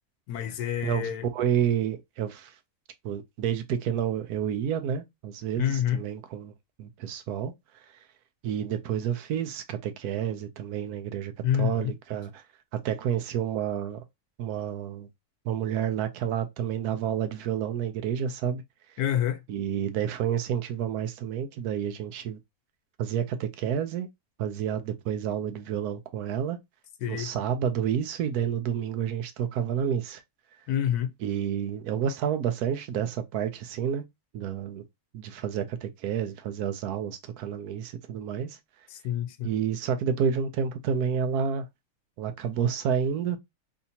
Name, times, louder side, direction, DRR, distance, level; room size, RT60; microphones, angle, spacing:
voice 1, 0.3-1.3 5.6-6.0 11.4-11.9 19.0-19.4 27.0-27.3 30.7-31.1 38.9-39.5, left 10 dB, 90° left, 1.1 m, -27 dB
voice 2, 0.8-2.5 3.0-6.5 6.8-7.5 8.4-12.4 12.7-14.0 14.4-15.1 15.4-18.6 19.5-22.4 23.0-24.1 24.4-26.6 27.1-30.2 31.2-34.0 34.3-34.8 35.1-38.6 39.4-41.7 42.2-43.4, right 8 dB, 85° right, 1.1 m, -29 dB
3.3 x 2.8 x 2.7 m
omnidirectional pair, 1.6 m